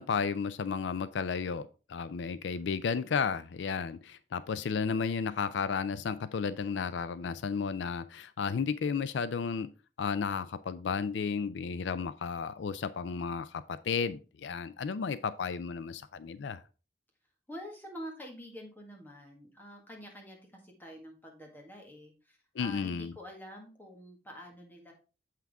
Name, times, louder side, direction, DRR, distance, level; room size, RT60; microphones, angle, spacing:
voice 1, 0.0-9.7 10.0-16.6 22.6-23.1, left 6 dB, 80° left, 0.4 m, -33 dB
voice 2, 17.5-24.9, equal, 10° left, 1.6 m, -47 dB
7.3 x 5.8 x 3.5 m
head